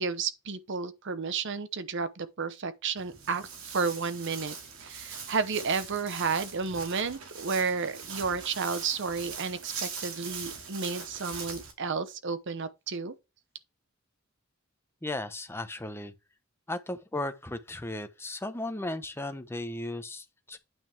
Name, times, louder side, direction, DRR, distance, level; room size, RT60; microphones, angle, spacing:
voice 1, 0.0-4.5 4.8-13.1, right 5 dB, 60° right, 0.9 m, -32 dB
Walk footsteps, 3.0-11.7, right 6 dB, 85° right, 2.3 m, -41 dB
voice 2, 15.0-16.1 16.7-20.6, left 2 dB, 10° left, 0.9 m, -36 dB
9.2 x 5.7 x 3.5 m
head